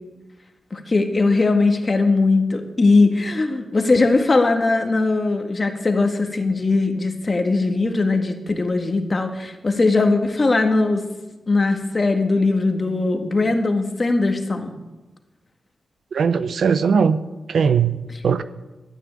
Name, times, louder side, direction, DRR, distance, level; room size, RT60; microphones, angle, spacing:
voice 1, 0.7-11.1 11.5-14.7 18.1-18.2, left 3 dB, 35° left, 5 dB, 1.9 m, -20 dB
voice 2, 16.1-17.2 17.5-18.0 18.2-18.4, right 6 dB, 75° right, 13 dB, 0.7 m, -19 dB
13.0 x 9.5 x 8.9 m, 1.1 s
wide cardioid pair, 95°, 0 cm